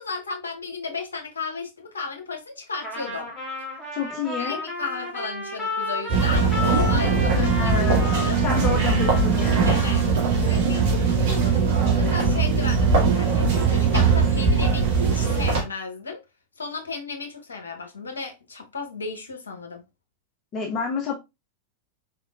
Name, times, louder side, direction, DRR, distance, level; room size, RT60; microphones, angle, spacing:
voice 1, 0.0-3.3 4.4-8.4 9.7-10.0 10.4-16.2 16.6-19.8, left 4 dB, 75° left, 0.9 m, -34 dB
Trumpet, 2.8-10.2, left 2 dB, 10° left, 1.9 m, -33 dB
voice 2, 3.9-4.6 7.3-8.1 8.4-9.9 20.5-21.1, left 5 dB, 30° left, 1.0 m, -28 dB
sound 1, 6.1-15.6, right 5 dB, 50° right, 1.7 m, -20 dB
4.3 x 3.5 x 2.3 m
figure-of-eight pair, 90°, 0 cm